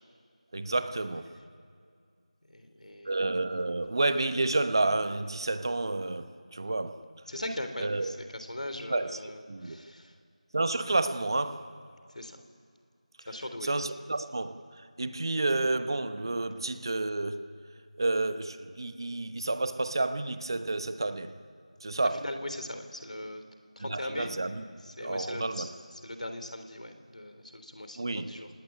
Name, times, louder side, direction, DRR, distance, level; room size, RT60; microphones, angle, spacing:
voice 1, 0.5-1.3 3.0-7.1 7.8-8.2 8.9-9.2 9.5-9.8 10.5-11.7 13.6-17.4 18.0-21.3 21.8-22.2 23.8-24.6 25.0-25.7 28.0-28.3, right 2 dB, 35° right, 1.1 m, -30 dB
voice 2, 2.5-3.2 7.3-10.1 12.1-12.4 13.3-13.7 22.0-23.4 23.8-24.3 24.8-25.7 26.0-28.5, left 1 dB, 70° left, 3.5 m, -39 dB
28.5 x 18.0 x 9.7 m
figure-of-eight pair, 175°, 4 cm